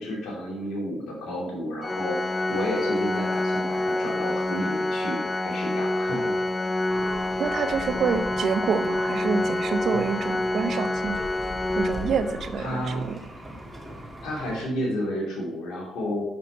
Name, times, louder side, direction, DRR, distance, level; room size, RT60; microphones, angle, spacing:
voice 1, 0.0-2.2 2.5-6.3 12.6-13.1 14.2-16.2, left 1 dB, 75° left, -2 dB, 2.7 m, -31 dB
Organ, 1.8-12.7, left 1 dB, 20° left, 0.4 m, -27 dB
Crowd, 2.1-10.0, left 2 dB, 55° left, 2.6 m, -47 dB
sound 1, 6.9-14.6, equal, 10° right, 2.1 m, -39 dB
voice 2, 7.4-11.2 11.8-13.0, right 5 dB, 60° right, 10 dB, 0.7 m, -27 dB
6.8 x 5.9 x 3.9 m, 0.87 s
supercardioid pair, 65°, 0 cm